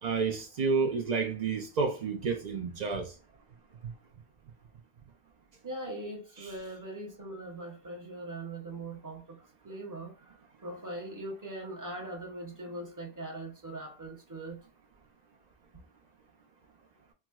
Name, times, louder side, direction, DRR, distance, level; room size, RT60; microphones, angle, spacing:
voice 1, 0.0-3.1 3.8-3.9, right 5 dB, 85° right, 0.3 m, -30 dB
voice 2, 5.6-10.2 10.6-14.6, right 1 dB, 20° right, 0.6 m, -41 dB
4.4 x 2.0 x 2.2 m
omnidirectional pair, 1.3 m